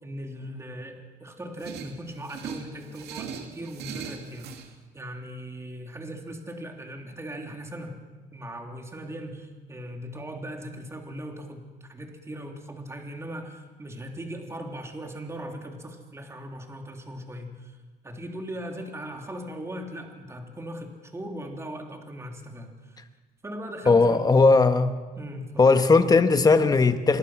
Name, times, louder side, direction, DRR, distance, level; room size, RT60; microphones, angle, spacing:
voice 1, 0.0-4.5 4.9-8.0 8.3-17.8 18.0-23.0 23.4-24.3 25.2-25.7, right 1 dB, 15° right, 3 dB, 3.2 m, -39 dB
sound 1, 1.6-4.7, right 7 dB, 75° right, 2.5 m, -40 dB
voice 2, 23.9-24.9 25.6-27.2, left 3 dB, 20° left, 8 dB, 1.5 m, -18 dB
26.5 x 21.5 x 6.2 m, 1.4 s
cardioid pair, 110°, 17 cm